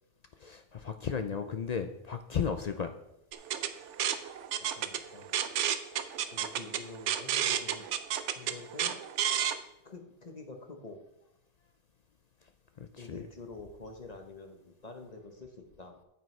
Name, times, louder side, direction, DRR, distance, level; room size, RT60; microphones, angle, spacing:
voice 1, 0.4-3.0 12.8-13.3, left 6 dB, 55° left, 8 dB, 0.4 m, -34 dB
sound 1, 3.3-9.6, right 10 dB, 85° right, 0.9 m, -31 dB
voice 2, 4.6-5.4 6.3-7.9 8.4-9.0 9.8-11.0 13.0-16.0, left 3 dB, 40° left, 4 dB, 0.9 m, -47 dB
8.9 x 8.8 x 3.2 m, 0.84 s
omnidirectional pair, 1.2 m